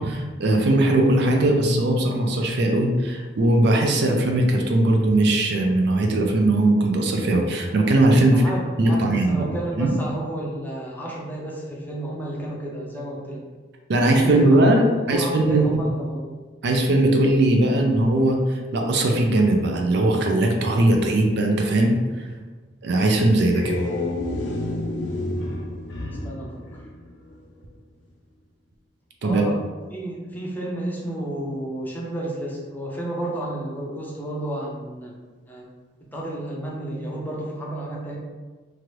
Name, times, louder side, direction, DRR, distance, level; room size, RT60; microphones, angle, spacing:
voice 1, 0.0-8.4 8.8-9.5 9.8-10.0 13.9-15.7 16.6-21.9 22.8-23.8 29.2-29.5, right 1 dB, 65° right, 2 dB, 0.4 m, -19 dB
voice 2, 8.2-13.4 13.9-16.3 26.1-26.9 29.2-29.6 29.9-35.1 35.5-35.7 36.1-38.2, right 1 dB, 10° left, -3 dB, 0.5 m, -32 dB
sound 1, 23.5-27.5, left 1 dB, 70° left, 0.5 m, -30 dB
3.0 x 2.5 x 3.0 m, 1.4 s
head